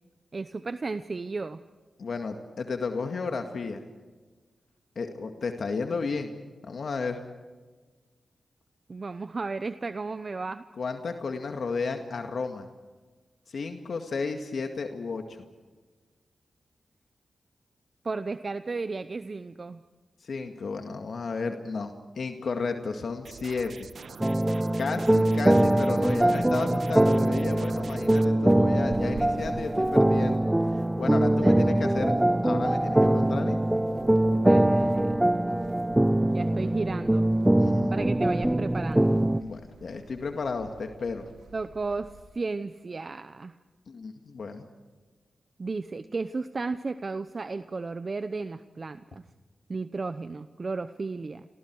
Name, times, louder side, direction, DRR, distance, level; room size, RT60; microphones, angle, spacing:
voice 1, 0.3-1.6 8.9-10.6 18.0-19.8 31.3-31.7 34.3-35.3 36.3-37.3 37.9-39.2 41.5-43.6 45.6-49.3 49.7-51.5, right 3 dB, 45° right, 11 dB, 0.8 m, -34 dB
voice 2, 2.0-3.8 5.0-6.3 6.6-7.2 10.8-12.7 13.5-15.4 20.2-23.9 24.8-30.5 31.0-32.1 32.4-33.6 37.6-37.9 39.4-41.2 43.9-44.7, left 4 dB, 70° left, 5 dB, 2.0 m, -33 dB
sound 1, 23.2-28.2, right 5 dB, 70° right, 1.4 m, -45 dB
sound 2, 24.2-39.4, right 1 dB, 15° right, 0.9 m, -23 dB
sound 3, 28.4-42.2, right 4 dB, 85° right, 2.3 m, -49 dB
28.5 x 23.0 x 4.8 m, 1.3 s
cardioid pair, 60°, 0 cm